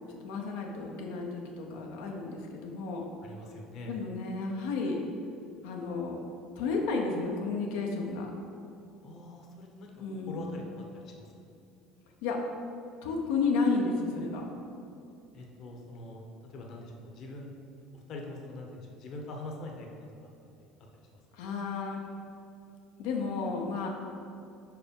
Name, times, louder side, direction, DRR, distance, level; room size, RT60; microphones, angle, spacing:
voice 1, 0.2-3.0 3.9-5.0 5.6-6.2 6.6-8.3 10.0-10.7 12.2-12.4 13.0-14.5 21.4-22.0 23.0-23.9, left 4 dB, 90° left, 1 dB, 0.8 m, -32 dB
voice 2, 3.2-4.0 9.0-11.6 15.3-16.2 16.5-17.5 18.1-19.9 20.6-20.7, left 2 dB, 45° left, 1 dB, 0.9 m, -43 dB
4.9 x 4.7 x 5.4 m, 2.6 s
cardioid pair, 150°, 0 cm